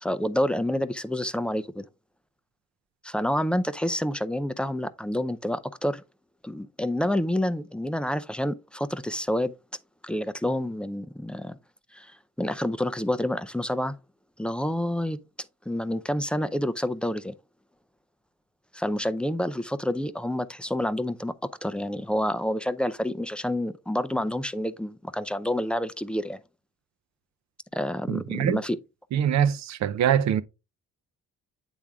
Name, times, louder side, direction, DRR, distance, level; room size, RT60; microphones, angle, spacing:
voice 1, 0.0-1.8 3.0-6.0 6.4-9.5 10.0-11.6 11.9-12.1 12.4-13.9 14.4-15.2 15.7-17.3 18.7-26.4 27.7-28.8, left 1 dB, 5° left, 0.4 m, -28 dB
voice 2, 28.1-28.6 29.1-30.4, right 9 dB, 65° right, 0.6 m, -24 dB
8.8 x 3.5 x 3.5 m
cardioid pair, 90°, 30 cm